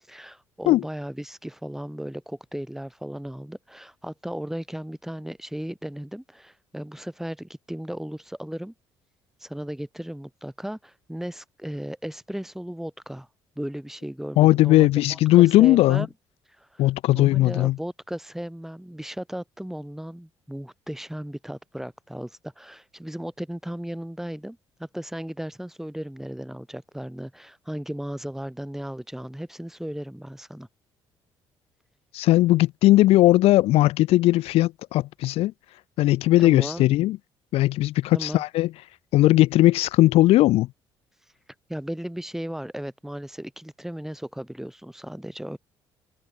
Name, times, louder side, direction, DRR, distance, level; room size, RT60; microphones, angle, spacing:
voice 1, 0.1-8.7 9.4-13.3 13.6-16.1 16.6-16.8 17.1-30.7 36.4-36.8 38.1-38.4 41.7-45.6, equal, 5° right, 3.0 m, -36 dB
voice 2, 14.4-16.1 16.8-17.8 32.1-35.5 36.0-37.2 37.5-38.7 39.1-40.7, left 16 dB, 80° left, 1.2 m, -18 dB
supercardioid pair, 70°, 10 cm